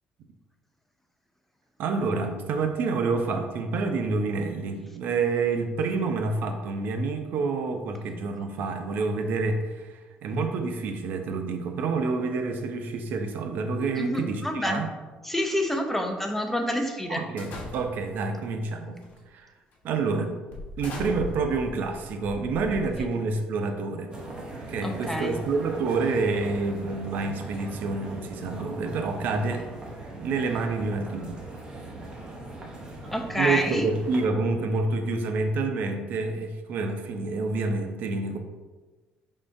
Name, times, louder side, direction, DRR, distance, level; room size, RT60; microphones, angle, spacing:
voice 1, 1.8-14.9 17.1-19.0 19.3-19.5 19.8-20.3 20.8-24.1 24.7-29.7 30.2-31.4 33.4-38.4, right 4 dB, 65° right, 6 dB, 0.5 m, -28 dB
voice 2, 14.0-14.8 15.2-17.2 24.8-25.4 33.1-33.8, left 1 dB, 5° left, 4 dB, 0.5 m, -28 dB
sound 1, 17.4-18.2 19.0-19.3 19.7-19.8 20.5-23.4, left 2 dB, 55° left, 1.1 m, -39 dB
sound 2, 24.1-34.3, right 2 dB, 25° right, 0.7 m, -40 dB
5.4 x 3.6 x 2.6 m, 1.3 s
cardioid pair, 135°, 3 cm